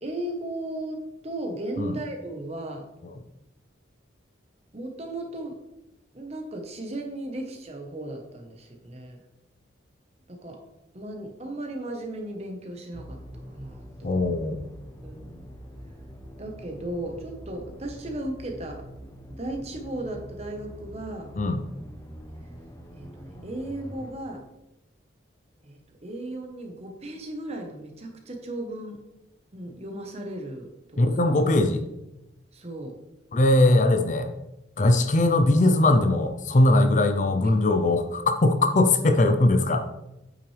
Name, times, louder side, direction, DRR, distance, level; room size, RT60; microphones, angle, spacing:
voice 1, 0.0-2.9 4.7-5.6 6.1-9.2 10.3-10.6 10.9-13.2 13.5-14.2 15.0-15.5 16.4-18.9 19.3-21.3 22.9-24.5 25.6-29.0 29.5-31.2 32.5-32.9 37.4-37.7, right 1 dB, 35° right, 3 dB, 1.1 m, -36 dB
sound 1, 12.9-24.1, equal, 15° left, 0.8 m, -44 dB
voice 2, 14.0-14.7 21.4-21.7 31.0-31.8 33.3-34.3 34.8-39.8, left 2 dB, 40° left, 7 dB, 0.5 m, -20 dB
8.7 x 5.8 x 3.3 m, 0.93 s
head